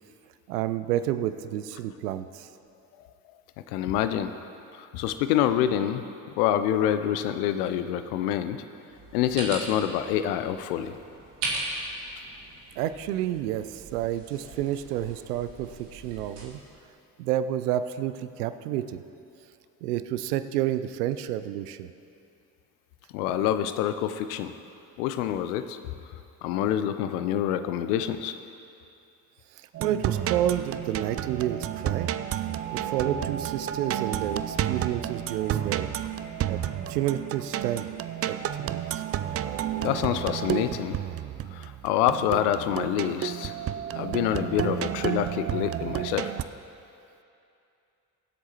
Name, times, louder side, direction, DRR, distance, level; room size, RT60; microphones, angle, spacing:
voice 1, 0.5-2.5 12.8-16.6 17.2-19.0 19.8-21.9 29.8-32.1 32.7-35.9 36.5-36.6 36.9-37.9 38.3-39.0 39.6-39.7, right 12 dB, 85° right, 12 dB, 0.5 m, -30 dB
voice 2, 3.7-4.3 4.7-6.0 6.4-8.6 9.1-11.0 23.1-24.5 25.0-25.8 26.4-28.4 39.4-41.0 41.5-43.5 43.9-46.3, left 10 dB, 80° left, 10 dB, 0.6 m, -27 dB
sound 1, 8.9-16.5, right 2 dB, 65° right, 2.4 m, -39 dB
sound 2, 29.7-46.4, right 11 dB, 35° right, 0.4 m, -31 dB
sound 3, 30.0-40.9, left 1 dB, 15° left, 2.1 m, -49 dB
22.0 x 8.1 x 3.0 m, 2.7 s
hypercardioid pair, 45°, 45 cm